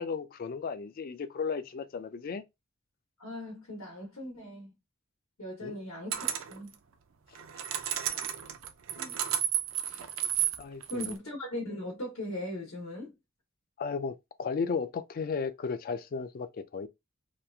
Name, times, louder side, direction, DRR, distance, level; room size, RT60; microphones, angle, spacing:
voice 1, 0.0-2.4 5.6-5.8 8.1-8.2 9.9-10.0 10.6-11.1 13.8-16.9, left 5 dB, 45° left, 0.3 m, -35 dB
voice 2, 3.2-4.7 5.4-6.7 9.0-9.2 10.9-13.1, left 1 dB, 75° left, 1.0 m, -39 dB
sound 1, 6.1-6.6 7.4-11.2, right 10 dB, 65° right, 0.4 m, -32 dB
2.9 x 2.3 x 2.2 m
head